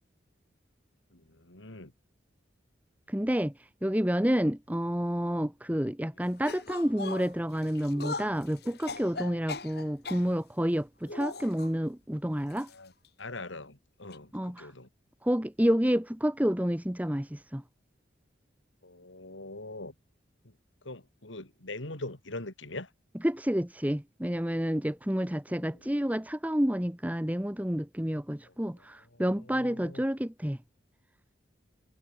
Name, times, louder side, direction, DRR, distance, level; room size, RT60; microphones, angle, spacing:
voice 1, 1.1-1.9 12.7-12.9 13.2-14.9 18.8-19.9 20.8-22.9 25.5-25.8 28.5-28.6 29.1-29.2 29.5-30.0, left 2 dB, 80° left, 3.2 m, -42 dB
voice 2, 3.1-3.5 3.8-12.7 14.3-14.7 15.2-17.6 23.2-30.6, equal, 10° right, 1.0 m, -29 dB
sound 1, 6.4-10.3 11.1-11.7 12.5-12.7 13.0-13.1 14.1-14.2, left 3 dB, 55° left, 3.4 m, -40 dB
head